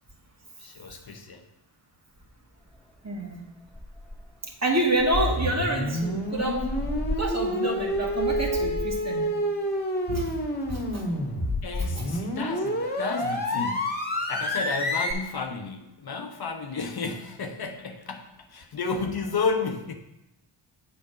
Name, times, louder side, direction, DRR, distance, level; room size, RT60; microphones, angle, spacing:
voice 1, 0.6-1.4 11.6-14.0 14.3-19.9, left 4 dB, 50° left, 5 dB, 1.0 m, -32 dB
sound 1, 2.2-2.3 2.7-3.0 3.3-3.4 3.7-4.4 4.9-9.1, left 1 dB, ahead, 0.4 m, -36 dB
voice 2, 3.0-3.5 4.4-6.7 7.2-9.4 10.1-10.4 10.7-11.1 11.8-12.0, right 1 dB, 35° right, 0 dB, 2.0 m, -28 dB
sound 2, 5.1-15.1, equal, 20° left, 2.0 m, -28 dB
7.5 x 4.5 x 5.9 m, 0.90 s
supercardioid pair, 45°, 47 cm